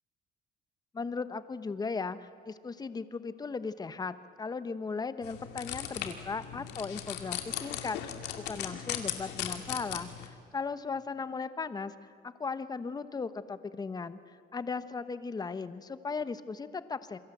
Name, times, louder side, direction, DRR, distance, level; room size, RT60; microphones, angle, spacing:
voice 1, 0.9-8.0 8.5-11.9 12.2-14.2 14.5-17.2, left 4 dB, 25° left, 12 dB, 1.1 m, -37 dB
sound 1, 5.2-10.3, left 10 dB, 90° left, 2.5 m, -38 dB
28.0 x 22.5 x 7.9 m, 2.4 s
cardioid pair, 110°, 17 cm